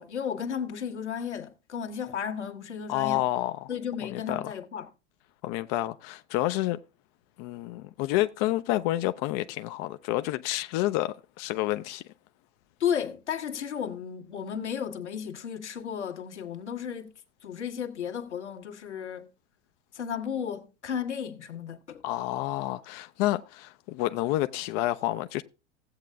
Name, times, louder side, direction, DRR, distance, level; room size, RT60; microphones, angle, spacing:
voice 1, 0.0-3.2 3.7-4.9 12.8-17.1 17.4-19.3 19.9-22.0, left 8 dB, 75° left, 1.5 m, -34 dB
voice 2, 2.9-3.7 4.0-4.4 5.4-6.8 7.4-12.0 22.0-25.4, left 16 dB, 40° left, 0.5 m, -29 dB
15.5 x 8.2 x 2.3 m
figure-of-eight pair, 90°, 35 cm